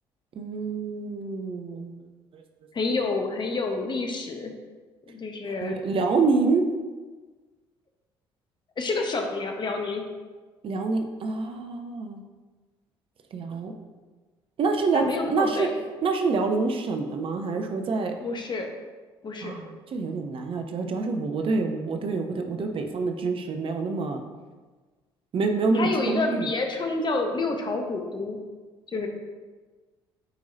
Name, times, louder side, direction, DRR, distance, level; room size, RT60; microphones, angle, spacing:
voice 1, 0.3-1.9 2.3-2.4 5.6-6.6 10.6-12.2 13.3-13.7 14.6-15.7 16.0-18.1 19.4-24.2 25.3-26.5, right 4 dB, 45° right, 5 dB, 0.8 m, -26 dB
voice 2, 2.7-4.5 5.1-5.8 8.8-10.0 14.9-15.7 18.2-18.7 19.2-19.5 25.7-28.4 28.9-29.1, left 3 dB, 35° left, 3 dB, 1.1 m, -28 dB
8.8 x 4.7 x 2.8 m, 1.3 s
hypercardioid pair, 50°, 13 cm